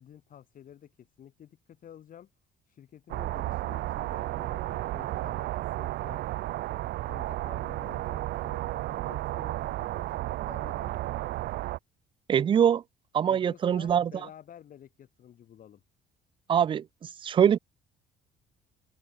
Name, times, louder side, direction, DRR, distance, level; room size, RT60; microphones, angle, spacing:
voice 1, 0.0-2.3 2.7-6.2 7.0-11.0 13.3-15.8, left 10 dB, 55° left, 4.7 m, -51 dB
sound 1, 3.1-11.8, right 16 dB, 75° right, 0.8 m, -33 dB
voice 2, 12.3-12.8 13.1-14.1 16.5-17.6, right 8 dB, 30° right, 0.3 m, -23 dB
open air
cardioid pair, 110°, 17 cm